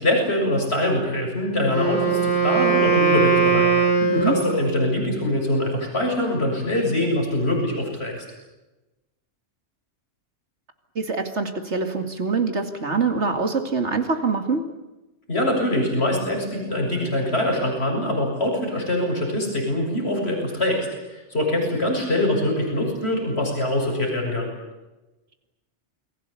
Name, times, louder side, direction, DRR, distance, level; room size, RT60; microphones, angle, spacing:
voice 1, 0.0-3.7 4.1-8.2 15.3-24.5, left 1 dB, 60° left, 1 dB, 7.5 m, -23 dB
Wind instrument woodwind instrument, 1.6-4.9, right 5 dB, 35° left, 5.7 m, -20 dB
voice 2, 4.0-4.4 11.0-14.7, right 4 dB, 75° right, 6 dB, 2.6 m, -24 dB
29.0 x 21.0 x 8.4 m, 1.0 s
omnidirectional pair, 1.2 m